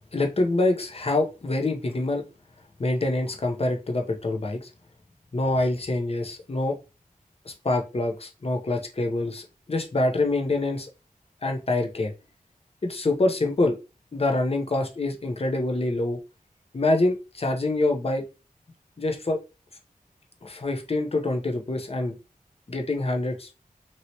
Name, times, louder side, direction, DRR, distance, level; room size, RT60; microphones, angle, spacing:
voice 1, 0.1-2.2 2.8-4.7 5.3-6.8 7.5-10.9 11.4-12.1 12.8-13.8 14.1-16.2 16.7-18.2 19.0-19.4 20.4-22.1 22.7-23.5, left 2 dB, 45° left, 3 dB, 0.7 m, -25 dB
2.9 x 2.8 x 2.8 m, 0.28 s
wide cardioid pair, 75°, 15 cm